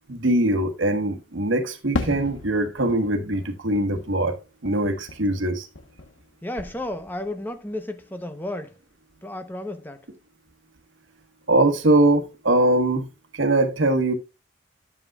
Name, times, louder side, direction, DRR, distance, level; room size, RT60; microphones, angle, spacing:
voice 1, 0.1-5.7 11.5-13.1 13.3-14.1, right 1 dB, 80° right, 1.3 m, -22 dB
Fireworks, 1.9-6.3 6.6-7.4, left 2 dB, 90° left, 1.1 m, -35 dB
voice 2, 6.4-8.8 9.2-10.0, left 1 dB, 10° left, 0.8 m, -33 dB
10.5 x 7.2 x 2.3 m
head